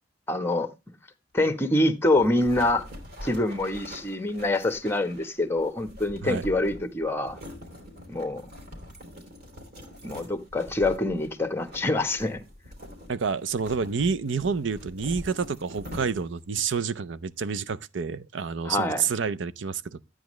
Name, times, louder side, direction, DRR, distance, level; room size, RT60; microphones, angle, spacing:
voice 1, 0.3-0.7 1.3-2.8 3.2-7.4 8.1-8.4 10.0-12.4 18.6-19.0, left 2 dB, 15° left, 1.1 m, -25 dB
sound 1, 2.2-16.5, equal, 55° right, 3.3 m, -44 dB
voice 2, 13.1-20.0, right 5 dB, 70° right, 0.6 m, -29 dB
12.5 x 9.1 x 3.1 m
head